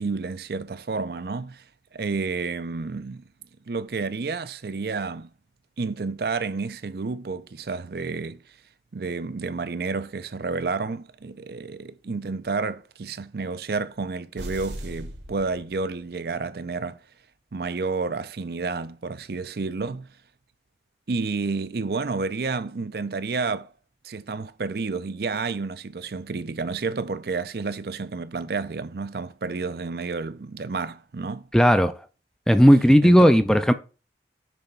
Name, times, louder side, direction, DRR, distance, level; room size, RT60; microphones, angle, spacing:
voice 1, 0.0-1.6 1.9-3.2 3.7-5.3 5.8-8.4 8.9-17.0 17.5-20.1 21.1-23.7 24.0-31.4 33.0-33.3, right 4 dB, 60° right, 0.5 m, -30 dB
sound 1, 14.4-16.2, right 1 dB, 90° right, 1.9 m, -38 dB
voice 2, 31.5-31.9 32.5-33.7, equal, 5° left, 0.4 m, -15 dB
6.9 x 3.4 x 5.5 m
head